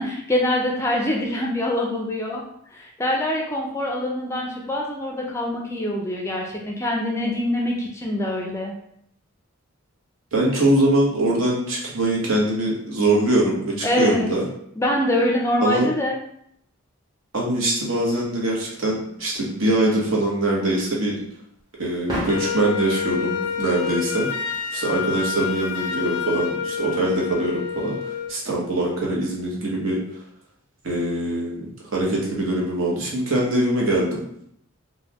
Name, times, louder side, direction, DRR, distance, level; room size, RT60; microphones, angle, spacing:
voice 1, 0.0-2.4 2.7-8.7 13.8-14.3 14.8-16.1, left 1 dB, 15° left, -1 dB, 0.4 m, -24 dB
voice 2, 10.3-14.5 15.6-15.9 17.3-21.2 21.8-24.3 24.7-30.0 30.8-34.2, right 1 dB, 70° right, -3 dB, 0.9 m, -23 dB
sound 1, 18.3-29.5, equal, 20° right, 0.7 m, -41 dB
Wind instrument woodwind instrument, 22.3-28.4, left 7 dB, 90° left, 0.3 m, -28 dB
3.9 x 2.2 x 2.8 m, 0.71 s
head